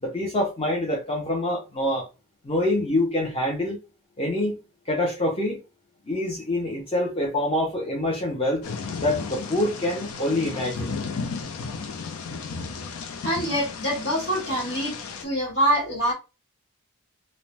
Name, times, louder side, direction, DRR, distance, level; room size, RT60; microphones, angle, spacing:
voice 1, 0.0-2.1 2.4-3.8 4.2-4.6 4.9-5.6 6.1-8.6 9.0-11.0, left 1 dB, 25° left, 0.6 m, -25 dB
Thunder / Rain, 8.6-15.2, left 4 dB, 80° left, 0.5 m, -34 dB
voice 2, 13.2-15.0 15.2-16.1, equal, 55° left, 1.4 m, -25 dB
2.5 x 2.0 x 3.1 m
head